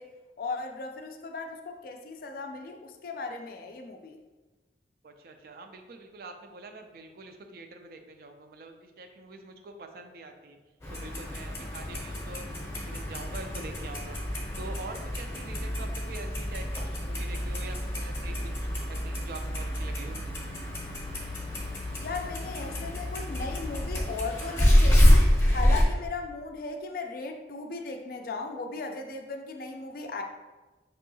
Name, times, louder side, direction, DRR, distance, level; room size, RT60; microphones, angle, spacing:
voice 1, 0.0-4.2 22.0-30.2, left 3 dB, 50° left, 4 dB, 0.3 m, -37 dB
voice 2, 5.0-10.6 10.9-12.5 12.7-14.2 14.6-16.7 16.9-20.2, right 2 dB, 55° right, 5 dB, 0.4 m, -45 dB
Clock, 10.8-25.8, equal, 15° left, 0.7 m, -27 dB
5.3 x 2.7 x 2.7 m, 1.2 s
head